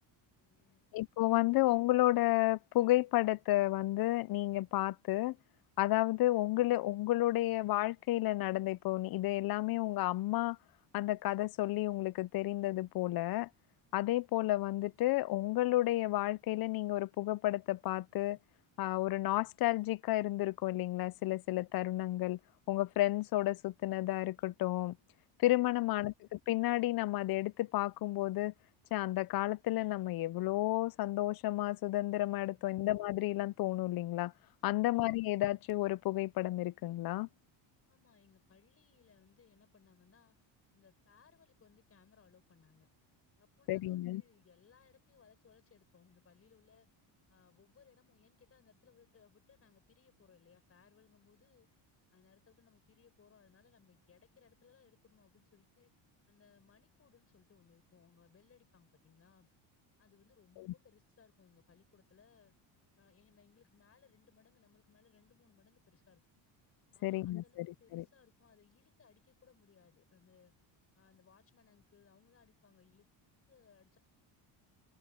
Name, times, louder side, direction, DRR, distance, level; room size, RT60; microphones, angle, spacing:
voice 1, 0.4-0.9 32.5-32.8 37.9-40.4 40.7-42.9 43.4-46.9 47.3-51.7 52.1-55.9 56.3-59.5 60.0-62.5 63.0-66.2 66.9-70.5 70.9-73.1 73.5-74.0, left 6 dB, 30° left, 7.6 m, -66 dB
voice 2, 0.9-5.4 5.8-10.6 10.9-13.5 13.9-18.4 18.8-22.4 22.7-25.0 25.4-28.5 28.9-34.3 34.6-37.3 43.7-44.2 60.6-60.7 67.0-67.7 67.9-68.0, left 17 dB, 50° left, 0.5 m, -31 dB
cardioid pair, 165°, 47 cm